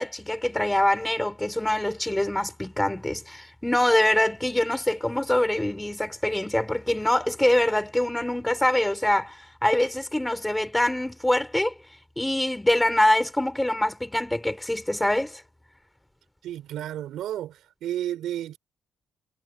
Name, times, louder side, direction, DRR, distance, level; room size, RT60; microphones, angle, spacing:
voice 1, 0.0-11.7 12.2-15.4, left 1 dB, 5° left, 3.2 m, -24 dB
voice 2, 16.4-18.6, right 12 dB, 75° right, 5.6 m, -32 dB
cardioid pair, 155°, 0 cm